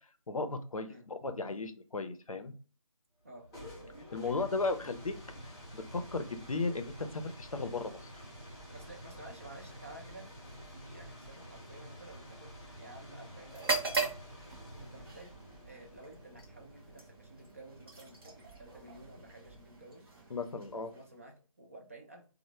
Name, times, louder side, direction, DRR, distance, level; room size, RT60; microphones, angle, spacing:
voice 1, 0.3-2.5 4.1-5.2 5.4-8.2 20.3-20.9, left 3 dB, 80° left, 8 dB, 0.5 m, -36 dB
sound 1, 3.2-19.9, equal, 10° left, 0.7 m, -50 dB
voice 2, 8.7-12.5 12.8-14.2 14.8-15.4 15.7-20.2 20.7-22.3, right 2 dB, 25° right, 1 dB, 0.4 m, -52 dB
sound 2, 13.5-21.3, right 3 dB, 45° right, 0.7 m, -40 dB
3.1 x 2.0 x 3.1 m, 0.38 s
figure-of-eight pair, 155°, 18 cm